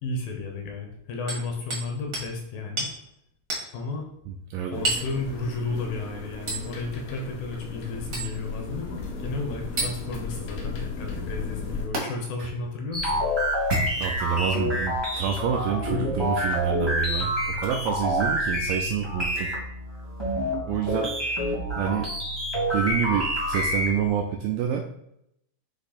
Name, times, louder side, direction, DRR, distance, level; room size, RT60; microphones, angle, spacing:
voice 1, 0.0-2.9 3.7-4.1 4.7-13.2, left 3 dB, 75° left, 2 dB, 2.6 m, -33 dB
Hammer, 1.3-1.9 2.1-2.3 2.8-2.9 3.5-3.7 4.8-5.1 6.5-6.7 8.1-8.3 9.8-9.9 11.9-12.0 13.5-14.3 15.1-15.2 16.5-16.7 17.6-17.8 19.3-19.4, right 2 dB, 65° right, 0.9 m, -30 dB
voice 2, 4.3-4.8 12.4-12.5 14.0-17.3 17.6-19.5 20.7-22.1 22.7-24.8, right 8 dB, 85° right, 3 dB, 2.0 m, -28 dB
sound 1, 4.7-11.9, left 3 dB, 90° left, 2.9 m, -36 dB
sound 2, 12.9-24.1, equal, 30° right, 0.4 m, -27 dB
8.0 x 3.1 x 4.2 m, 0.79 s
omnidirectional pair, 4.4 m